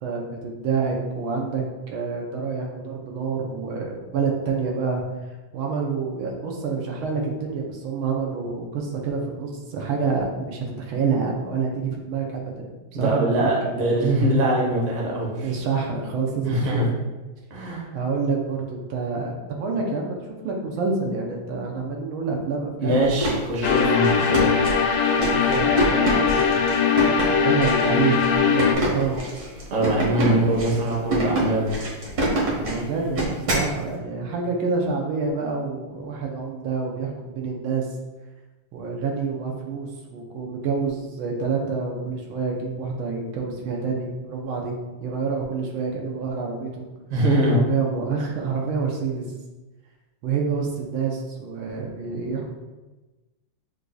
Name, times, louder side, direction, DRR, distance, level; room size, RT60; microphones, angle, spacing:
voice 1, 0.0-5.0 5.5-12.4 13.0-13.7 15.4-16.8 17.9-23.0 25.2-26.6 27.3-29.1 32.5-33.2 33.5-37.9 38.7-46.9 47.5-49.2 50.2-52.5, right 5 dB, 90° right, 0 dB, 1.6 m, -27 dB
voice 2, 12.9-15.5 16.5-16.9 17.5-17.8 22.8-24.5 29.7-31.7 47.1-47.6, right 1 dB, 45° right, -3 dB, 1.2 m, -22 dB
sound 1, 23.0-33.7, right 1 dB, 65° right, 1.8 m, -27 dB
sound 2, 23.6-28.8, left 6 dB, 85° left, 1.4 m, -20 dB
7.8 x 2.6 x 2.3 m, 1.1 s
omnidirectional pair, 2.2 m